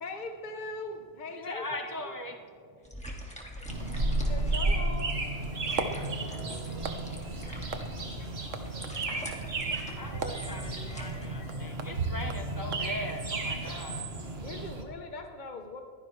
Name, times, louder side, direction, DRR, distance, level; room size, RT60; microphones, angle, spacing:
voice 1, 0.0-2.1 4.3-5.1 14.4-15.8, left 2 dB, 40° left, 4 dB, 0.9 m, -40 dB
voice 2, 1.4-2.4 3.9-4.0 10.0-14.1, left 1 dB, 20° right, 3 dB, 0.8 m, -40 dB
voice 3, 2.8-3.1 3.6-3.7 5.8-7.0 7.4-11.8 14.4-14.6, left 4 dB, 65° left, 2 dB, 2.1 m, -56 dB
sound 1, 2.8-11.3, equal, 5° left, 1.9 m, -46 dB
sound 2, 3.7-14.8, right 2 dB, 50° right, 1.8 m, -33 dB
sound 3, 5.4-14.0, right 4 dB, 70° right, 1.3 m, -40 dB
22.0 x 15.5 x 3.2 m, 2.2 s
omnidirectional pair, 1.4 m